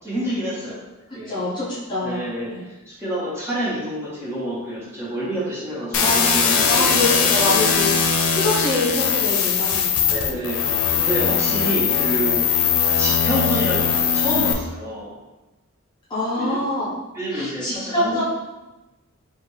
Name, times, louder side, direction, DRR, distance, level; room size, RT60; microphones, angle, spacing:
voice 1, 0.0-0.8 1.1-1.4 2.0-7.4 10.1-10.6 10.9-12.5 12.9-15.2 16.3-16.6 17.1-18.2, equal, 10° right, -9 dB, 1.3 m, -28 dB
voice 2, 1.2-2.2 2.5-2.6 6.0-10.4 11.3-11.4 16.1-16.9 17.3-18.2, left 2 dB, 20° left, -10 dB, 0.8 m, -25 dB
sound 1, 5.9-14.5, left 6 dB, 90° left, 0.5 m, -20 dB
5.1 x 2.5 x 3.2 m, 1.1 s
head